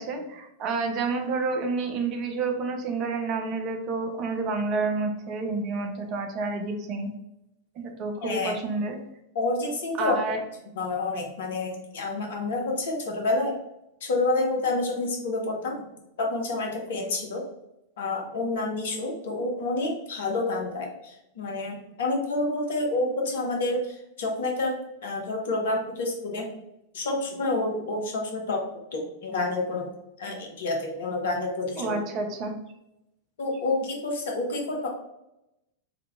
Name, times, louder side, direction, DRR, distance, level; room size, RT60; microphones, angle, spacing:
voice 1, 0.0-7.1 7.8-9.0 10.0-10.4 31.8-32.5, right 3 dB, 35° right, 4 dB, 0.7 m, -29 dB
voice 2, 8.2-8.6 9.3-10.2 10.8-13.5 14.0-15.8 16.2-17.4 18.0-24.7 25.0-26.5 26.9-28.6 28.9-29.9 30.2-32.0 33.4-34.9, left 2 dB, 60° left, 1 dB, 0.9 m, -28 dB
3.7 x 2.9 x 3.5 m, 0.87 s
figure-of-eight pair, 90°, 0 cm